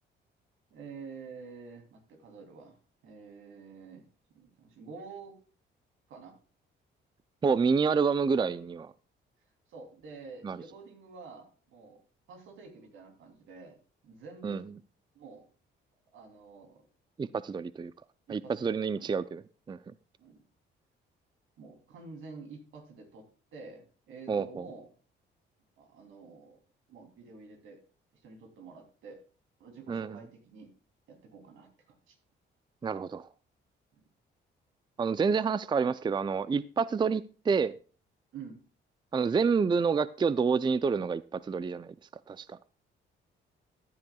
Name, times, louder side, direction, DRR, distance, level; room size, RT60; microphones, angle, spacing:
voice 1, 0.7-2.8 3.0-4.0 4.3-5.4 6.1-6.4 9.7-12.0 12.3-14.7 15.1-15.5 16.1-16.8 18.3-19.2 20.2-20.4 21.6-24.9 25.8-26.6 26.9-27.8 28.1-29.2 29.6-30.7 31.1-31.7 32.1-32.2 38.3-38.6, right 4 dB, 80° right, 3 dB, 3.0 m, -48 dB
voice 2, 7.4-8.9 10.4-10.6 14.4-14.6 17.2-17.9 18.3-19.4 19.7-19.8 24.3-24.7 29.9-30.2 32.8-33.3 35.0-37.8 39.1-41.9 42.3-42.6, right 5 dB, 25° right, 16 dB, 0.4 m, -28 dB
14.5 x 10.5 x 2.3 m, 0.37 s
cardioid pair, 90°, 20 cm